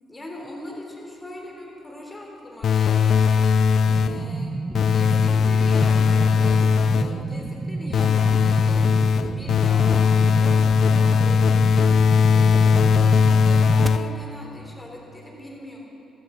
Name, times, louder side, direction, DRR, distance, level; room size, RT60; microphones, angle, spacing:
voice 1, 0.1-3.2 3.9-4.6 4.9-8.9 9.2-15.8, left 1 dB, 20° left, -1 dB, 3.5 m, -40 dB
sound 1, 2.6-4.3 4.7-7.2 7.9-14.3, left 6 dB, 60° left, 0.3 m, -19 dB
sound 2, 3.9-13.9, right 3 dB, 20° right, 0.4 m, -31 dB
15.5 x 12.0 x 5.1 m, 3.0 s
cardioid pair, 90°, 0 cm